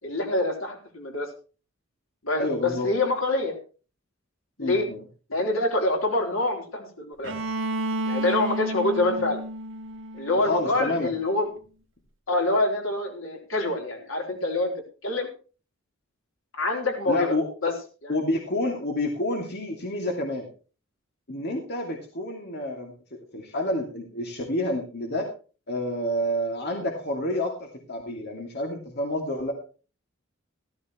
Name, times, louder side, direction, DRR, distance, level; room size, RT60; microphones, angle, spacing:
voice 1, 0.0-1.3 2.2-3.5 4.6-4.9 5.3-7.3 8.1-9.4 10.1-11.5 12.3-14.7 15.0-15.3 16.6-17.4 17.6-17.7 18.0-18.1, left 2 dB, 80° left, 2 dB, 3.8 m, -26 dB
voice 2, 2.4-2.9 4.6-5.0 9.1-9.2 10.4-11.1 17.1-17.5 18.1-20.5 21.3-25.3 25.7-29.5, left 1 dB, 55° left, 1 dB, 2.5 m, -29 dB
Bowed string instrument, 7.2-11.1, right 1 dB, 65° right, 1.7 m, -32 dB
15.0 x 14.0 x 3.1 m, 0.36 s
head